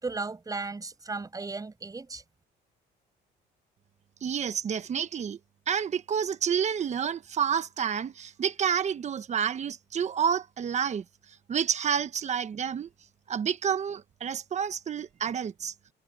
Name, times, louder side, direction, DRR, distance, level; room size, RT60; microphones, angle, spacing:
voice 1, 0.0-2.2, right 3 dB, 20° right, 6.7 m, -35 dB
voice 2, 4.2-5.4 5.7-11.0 11.5-12.9 13.3-15.7, right 8 dB, 40° right, 1.2 m, -29 dB
cardioid pair, 120°, 18 cm